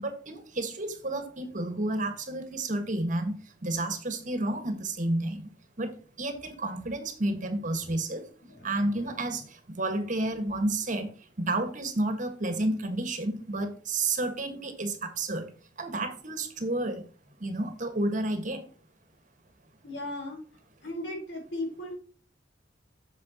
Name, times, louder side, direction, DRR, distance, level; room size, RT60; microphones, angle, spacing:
voice 1, 0.0-3.3 3.6-5.4 5.8-5.9 6.2-8.2 8.6-9.4 9.8-11.1 11.5-15.5 15.8-17.0 17.4-18.6, right 2 dB, 45° right, 7 dB, 1.6 m, -30 dB
voice 2, 8.4-9.2 19.8-20.4 20.8-22.0, left 1 dB, 70° left, 0 dB, 4.3 m, -37 dB
8.7 x 7.2 x 2.9 m, 0.40 s
head